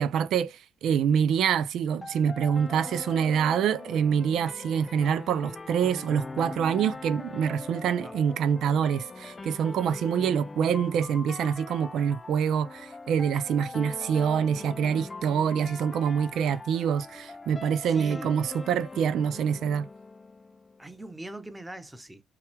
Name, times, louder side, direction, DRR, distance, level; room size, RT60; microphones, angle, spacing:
voice 1, 0.0-19.9, right 7 dB, 75° right, 0.4 m, -26 dB
sound 1, 2.0-21.0, left 3 dB, 25° left, 0.4 m, -41 dB
voice 2, 17.9-18.3 20.8-22.2, right 1 dB, 10° right, 0.9 m, -41 dB
5.7 x 2.3 x 3.3 m
cardioid pair, 90°, 0 cm